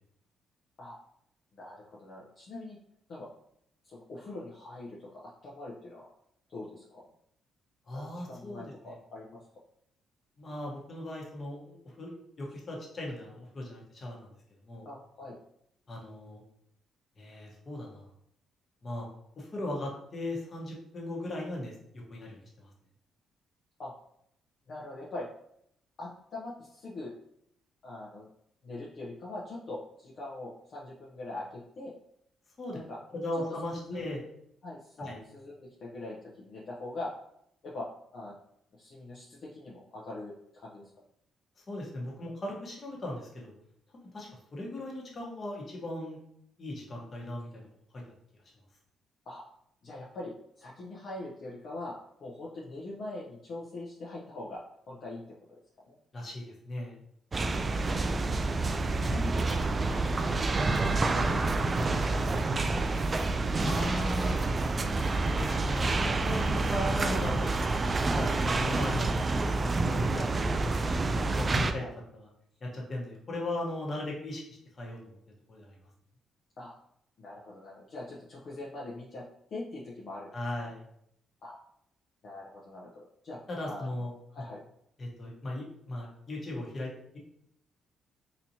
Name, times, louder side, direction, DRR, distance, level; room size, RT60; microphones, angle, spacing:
voice 1, 1.5-2.8 3.1-3.3 3.8-6.1 6.5-7.1 7.9-9.4 14.8-15.4 23.8-23.9 24.7-25.3 26.0-27.1 27.8-28.3 28.6-31.9 32.7-33.0 33.9-34.1 34.6-37.1 37.6-37.9 38.1-38.4 38.7-40.8 49.3-49.4 49.8-51.9 52.2-54.6 54.9-55.2 55.9-56.0 57.5-57.7 58.4-59.6 59.9-60.3 60.9-63.2 63.5-63.9 68.4-68.6 71.1-71.9 76.6-76.7 77.2-80.3 81.4-81.6 82.2-83.4 83.7-83.9 84.3-84.6, left 2 dB, 55° left, -6 dB, 0.8 m, -42 dB
voice 2, 7.9-8.9 10.4-14.3 14.7-14.9 15.9-16.4 17.2-18.1 18.8-19.1 19.4-22.7 32.6-32.8 33.1-34.2 35.0-35.2 41.7-43.5 44.1-46.2 46.6-47.7 56.1-57.0 63.6-64.4 65.2-70.8 71.4-71.8 72.1-72.3 72.6-75.2 75.5-75.7 80.3-80.8 83.5-84.1 85.0-87.2, left 1 dB, 40° left, -2 dB, 1.2 m, -38 dB
sound 1, 57.3-71.7, right 3 dB, 30° right, 0.3 m, -28 dB
4.1 x 2.8 x 2.8 m, 0.72 s
cardioid pair, 90°, 0 cm